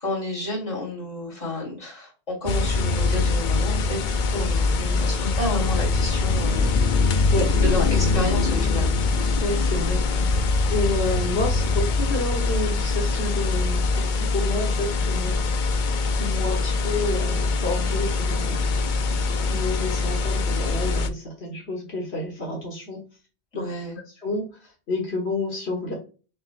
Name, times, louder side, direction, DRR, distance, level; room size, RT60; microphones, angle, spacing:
voice 1, 0.0-4.0 4.3-6.8 7.6-8.9 10.1-10.4 23.5-24.0, left 1 dB, 30° left, -5 dB, 2.4 m, -30 dB
sound 1, 2.4-21.1, left 3 dB, 55° left, 0.6 m, -23 dB
voice 2, 4.3-5.3 7.3-7.5 9.4-10.3 10.7-15.9 16.1-18.7 19.4-23.0 23.5-23.6 24.2-25.9, left 2 dB, 75° left, -2 dB, 1.7 m, -30 dB
5.3 x 3.1 x 2.4 m, 0.35 s
omnidirectional pair, 1.1 m